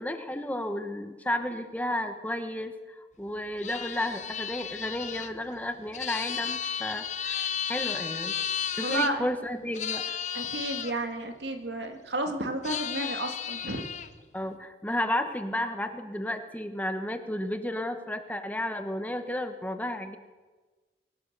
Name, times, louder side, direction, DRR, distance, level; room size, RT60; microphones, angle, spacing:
voice 1, 0.0-8.3 8.7-10.2 14.3-20.2, left 1 dB, 10° left, 7 dB, 1.2 m, -32 dB
sound 1, 3.6-9.1 9.7-10.9 12.6-14.1, left 8 dB, 40° left, 0.9 m, -33 dB
voice 2, 8.8-9.3 10.3-13.9, right 2 dB, 85° right, 5 dB, 2.2 m, -32 dB
23.5 x 17.0 x 6.8 m, 1.3 s
head